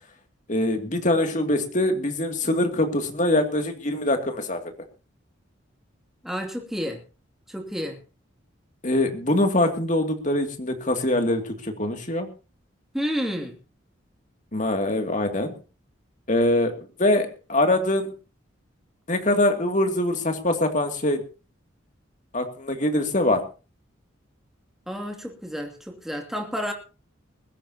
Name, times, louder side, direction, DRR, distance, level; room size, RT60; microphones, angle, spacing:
voice 1, 0.5-4.6 8.8-12.3 14.5-15.5 16.3-18.1 19.1-21.2 22.3-23.5, left 1 dB, 40° left, 5 dB, 2.5 m, -23 dB
voice 2, 6.2-7.0 7.5-8.0 12.9-13.6 24.9-26.7, equal, ahead, 2 dB, 2.5 m, -30 dB
21.0 x 16.0 x 2.9 m, 0.33 s
head